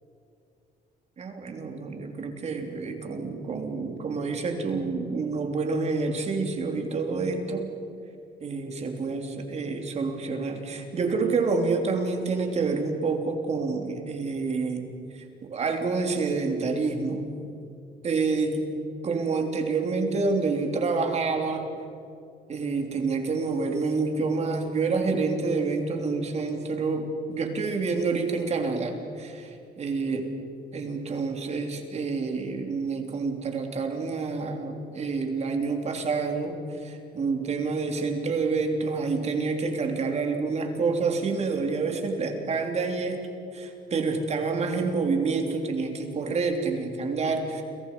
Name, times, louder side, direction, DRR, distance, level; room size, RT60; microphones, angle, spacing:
voice 1, 1.2-7.7 8.4-14.8 15.1-17.3 18.0-18.6 19.0-21.7 22.5-30.2 30.7-43.2 43.5-47.6, right 4 dB, 40° right, 4 dB, 3.4 m, -28 dB
30.0 x 23.5 x 5.6 m, 2.5 s
cardioid pair, 110°, 17 cm